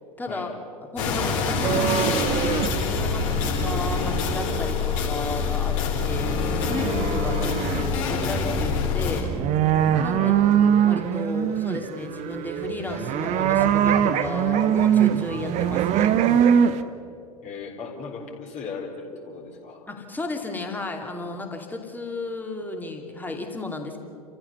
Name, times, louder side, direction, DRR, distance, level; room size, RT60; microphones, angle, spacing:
voice 1, 0.2-0.5 0.9-5.8 6.0-9.6 10.0-10.4 10.8-16.2 19.9-24.0, left 2 dB, 10° left, 3 dB, 2.7 m, -33 dB
sound 1, 1.0-9.2, left 4 dB, 50° left, 4.3 m, -25 dB
sound 2, 1.6-2.7 3.0-4.5 5.8-5.9 6.4-7.9 8.2-8.3 8.6-16.8, right 9 dB, 35° right, 1.1 m, -23 dB
voice 2, 17.4-19.8, left 5 dB, 35° left, -1 dB, 3.9 m, -37 dB
30.0 x 15.0 x 6.9 m, 2.7 s
figure-of-eight pair, 85°, 20 cm